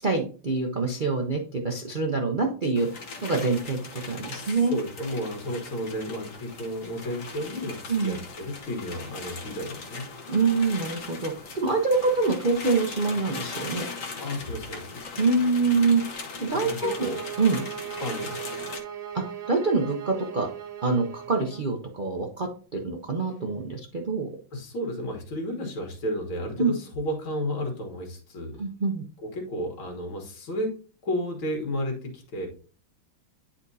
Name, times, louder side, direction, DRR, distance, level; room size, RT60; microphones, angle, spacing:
voice 1, 0.0-2.9 3.2-4.8 7.9-8.2 10.3-13.8 15.2-16.0 16.4-16.9 17.4-17.6 19.1-20.5 20.8-24.3 26.6-26.7 28.6-29.0, right 3 dB, 85° right, 1 dB, 0.4 m, -25 dB
sound 1, 2.7-18.8, left 4 dB, 45° left, 1.2 m, -39 dB
voice 2, 4.4-10.1 14.2-15.0 16.6-17.2 18.0-18.4 24.5-28.6 29.2-30.7 31.0-32.5, equal, 80° left, 1 dB, 2.3 m, -32 dB
sound 2, 16.8-21.7, right 9 dB, 65° right, 1.1 m, -38 dB
10.0 x 4.3 x 2.7 m, 0.40 s
omnidirectional pair, 2.2 m